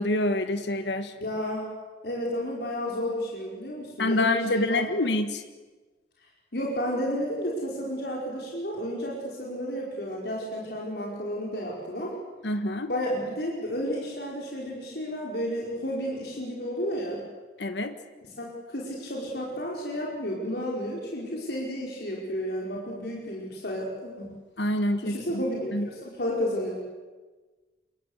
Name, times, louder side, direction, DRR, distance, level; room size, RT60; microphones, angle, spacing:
voice 1, 0.0-1.1 4.0-5.4 12.4-12.9 17.6-17.9 24.6-25.4 25.7-25.9, left 1 dB, 80° left, 9 dB, 1.5 m, -26 dB
voice 2, 1.2-1.7 2.0-4.8 6.5-12.1 12.8-17.2 18.2-24.3 25.0-26.8, equal, 65° left, -3 dB, 5.0 m, -32 dB
27.0 x 23.0 x 8.2 m, 1.3 s
head